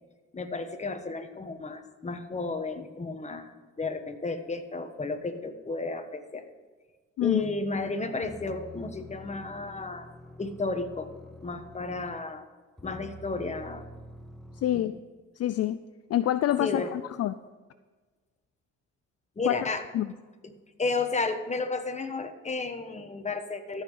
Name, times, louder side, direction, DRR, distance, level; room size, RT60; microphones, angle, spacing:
voice 1, 0.3-6.4 7.2-10.1 10.4-11.1 11.4-12.4 12.8-13.8 14.7-14.9 16.6-16.9 19.4-19.9 20.4-20.5 20.8-23.8, left 3 dB, 25° left, 7 dB, 1.2 m, -33 dB
sound 1, 8.2-12.3 12.8-14.8, left 1 dB, ahead, 0.8 m, -47 dB
voice 2, 14.6-14.9 15.4-15.8 16.1-17.4 19.4-19.5 19.9-20.1, left 12 dB, 55° left, 13 dB, 0.4 m, -26 dB
13.5 x 5.7 x 7.8 m, 1.3 s
cardioid pair, 90°, 30 cm